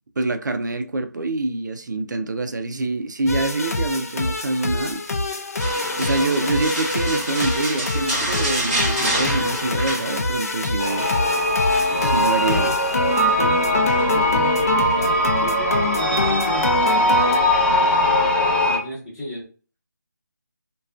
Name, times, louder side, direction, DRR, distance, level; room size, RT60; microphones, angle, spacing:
voice 1, 0.2-5.0 6.0-11.1 12.0-12.7, right 2 dB, 80° right, 0.4 m, -25 dB
sound 1, 3.3-17.4, left 2 dB, 55° left, 0.4 m, -25 dB
sound 2, 5.6-10.6 10.9-11.2 11.7-12.7 13.8-14.3 14.8-15.0, right 1 dB, 15° right, 1.0 m, -28 dB
sound 3, 10.8-18.8, left 1 dB, 40° left, 0.8 m, -20 dB
voice 2, 11.9-12.7 13.4-19.5, left 1 dB, 5° left, 0.7 m, -33 dB
2.4 x 2.2 x 2.3 m
figure-of-eight pair, 170°, 10 cm